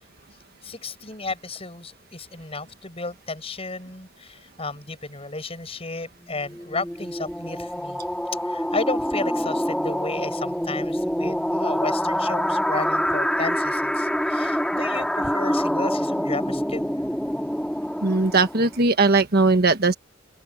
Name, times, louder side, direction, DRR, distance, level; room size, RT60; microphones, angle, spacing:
voice 1, 0.6-8.0 8.5-16.9, left 3 dB, 30° left, 6.4 m, -33 dB
sound 1, 6.2-18.8, equal, 5° left, 2.0 m, -26 dB
voice 2, 18.0-19.9, right 3 dB, 50° right, 1.4 m, -19 dB
open air
head